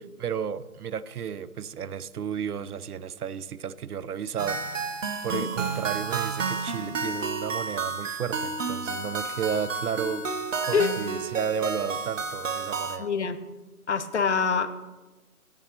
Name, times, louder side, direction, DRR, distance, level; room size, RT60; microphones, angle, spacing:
voice 1, 0.2-4.8 5.2-10.3 10.7-13.1, right 7 dB, 80° right, 0.6 m, -33 dB
sound 1, 4.4-13.0, right 4 dB, 55° right, 0.9 m, -31 dB
voice 2, 13.0-13.4 13.9-14.7, left 5 dB, 50° left, 0.6 m, -25 dB
9.1 x 4.2 x 6.8 m
figure-of-eight pair, 155°, 45 cm